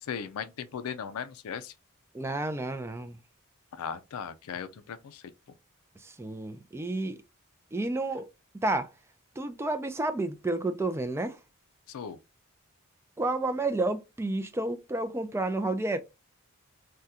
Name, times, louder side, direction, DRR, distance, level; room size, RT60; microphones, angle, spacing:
voice 1, 0.0-1.7 3.7-5.3 11.9-12.2, left 7 dB, 80° left, 0.4 m, -37 dB
voice 2, 2.1-3.2 6.0-7.2 7.7-8.3 8.6-8.9 9.4-11.4 13.2-16.0, right 2 dB, 10° right, 0.3 m, -30 dB
3.5 x 2.2 x 2.7 m
head